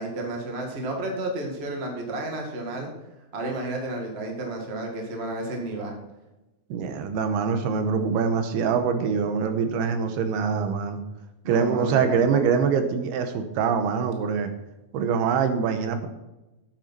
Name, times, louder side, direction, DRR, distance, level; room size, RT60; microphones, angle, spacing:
voice 1, 0.0-2.9 3.3-5.9 11.4-12.5, right 2 dB, 60° right, 1 dB, 0.6 m, -31 dB
voice 2, 6.7-11.0 11.5-14.5 14.9-16.1, right 6 dB, 80° right, 7 dB, 2.8 m, -24 dB
9.0 x 8.2 x 5.7 m, 1.0 s
omnidirectional pair, 4.8 m